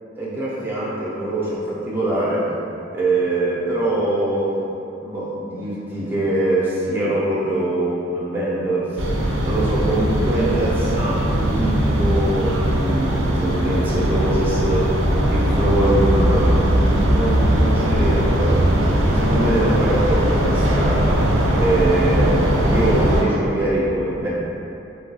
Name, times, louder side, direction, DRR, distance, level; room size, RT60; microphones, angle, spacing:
voice 1, 0.2-2.5 2.9-4.6 5.0-9.1 9.4-21.1 21.6-24.3, right 1 dB, 10° right, -8 dB, 0.4 m, -23 dB
sound 1, 9.0-23.2, right 1 dB, 90° right, 0.4 m, -19 dB
3.1 x 2.6 x 2.2 m, 2.7 s
head